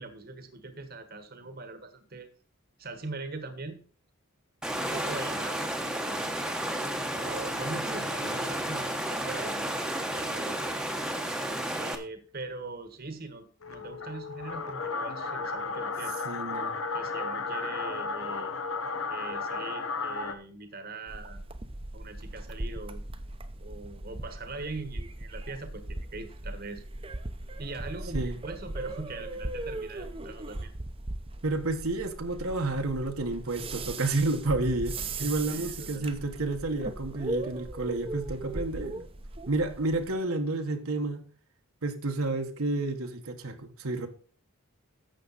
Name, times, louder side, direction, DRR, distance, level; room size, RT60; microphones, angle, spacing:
voice 1, 0.0-2.3 2.8-3.8 4.7-6.3 7.1-9.7 10.1-10.7 11.7-16.2 16.9-18.5 19.1-21.4 21.9-23.0 23.6-25.8 26.1-26.8 27.6-30.7 35.2-36.0, right 3 dB, 45° right, 1.3 m, -41 dB
Water, 4.6-11.9, right 1 dB, 5° right, 1.0 m, -32 dB
voice 2, 7.9-8.4 16.2-16.7 28.1-28.4 31.4-39.0 39.5-41.3 41.8-44.1, right 2 dB, 80° right, 1.4 m, -30 dB
sound 1, 13.6-20.3, left 4 dB, 70° left, 1.1 m, -34 dB
sound 2, 21.1-40.2, right 2 dB, 25° right, 0.8 m, -38 dB
12.0 x 7.8 x 4.1 m
head